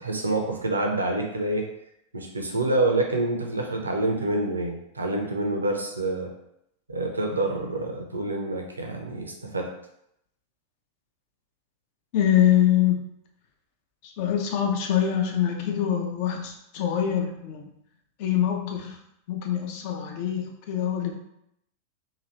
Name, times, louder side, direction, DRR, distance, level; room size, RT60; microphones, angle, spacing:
voice 1, 0.0-1.7 2.1-6.3 6.9-9.7, right 2 dB, 80° right, 2 dB, 0.5 m, -27 dB
voice 2, 12.1-13.0 14.0-17.7 18.2-19.0 19.3-21.1, left 10 dB, 45° left, 2 dB, 0.6 m, -24 dB
2.9 x 2.5 x 3.1 m, 0.78 s
figure-of-eight pair, 90°, 0 cm